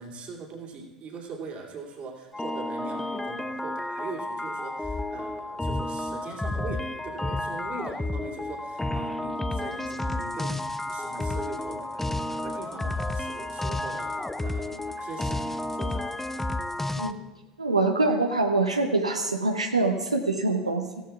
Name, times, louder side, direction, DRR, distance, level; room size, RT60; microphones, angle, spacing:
voice 1, 0.0-16.3, right 4 dB, 40° right, -1 dB, 2.8 m, -41 dB
sound 1, 2.3-17.1, left 2 dB, 10° left, 0.5 m, -31 dB
voice 2, 17.6-20.9, right 3 dB, 85° right, 4 dB, 0.7 m, -24 dB
16.5 x 14.0 x 2.4 m, 1.1 s
figure-of-eight pair, 75°, 3 cm